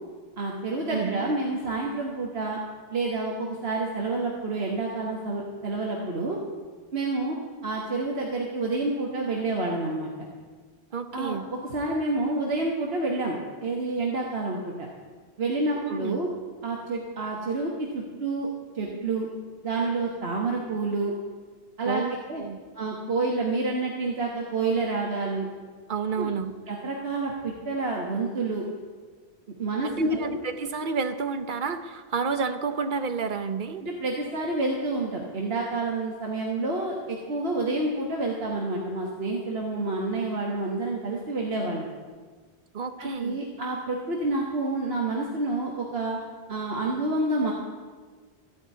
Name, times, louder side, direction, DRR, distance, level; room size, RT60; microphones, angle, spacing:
voice 1, 0.4-2.6 2.9-6.4 6.9-7.4 7.6-10.1 11.1-11.4 11.7-14.7 15.4-16.3 16.6-18.5 18.7-19.3 19.6-21.1 21.8-22.4 22.7-25.5 26.2-26.3 26.7-28.6 29.6-30.3 33.8-41.9 43.0-46.2 46.5-47.5, right 2 dB, 65° right, -1 dB, 1.5 m, -28 dB
voice 2, 0.9-1.3 10.9-11.5 15.8-16.2 21.8-22.6 25.9-26.5 29.8-33.8 42.7-43.4, right 5 dB, 50° right, 9 dB, 0.9 m, -30 dB
14.5 x 5.2 x 9.1 m, 1.5 s
omnidirectional pair, 1.1 m